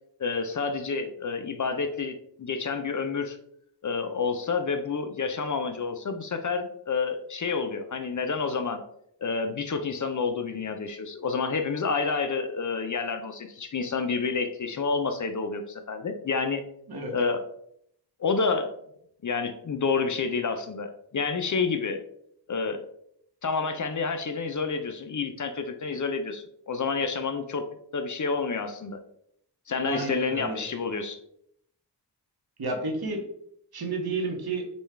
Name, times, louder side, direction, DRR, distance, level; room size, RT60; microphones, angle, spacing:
voice 1, 0.2-3.4 3.8-8.8 9.2-16.6 17.1-17.4 18.2-18.7 19.2-22.0 22.5-22.8 23.4-27.7 27.9-29.0 29.7-31.2, left 4 dB, 45° left, 7 dB, 0.5 m, -29 dB
voice 2, 29.8-30.6 32.6-33.2 33.7-34.7, right 2 dB, 60° right, 2 dB, 1.0 m, -31 dB
5.2 x 2.3 x 3.2 m, 0.71 s
wide cardioid pair, 65°, 42 cm